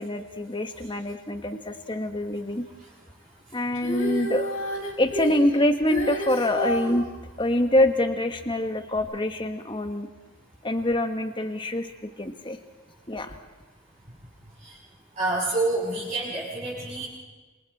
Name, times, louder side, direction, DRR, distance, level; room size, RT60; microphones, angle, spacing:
voice 1, 0.0-2.6 3.5-4.5 5.0-7.1 7.4-10.1 10.6-12.6 13.1-13.4, left 1 dB, 20° left, 7 dB, 1.5 m, -25 dB
Female singing, 3.7-7.0 9.0-9.1, equal, 60° left, 5.2 m, -30 dB
voice 2, 15.2-17.1, right 2 dB, 30° right, -10 dB, 7.1 m, -27 dB
27.5 x 27.0 x 4.3 m, 1.3 s
head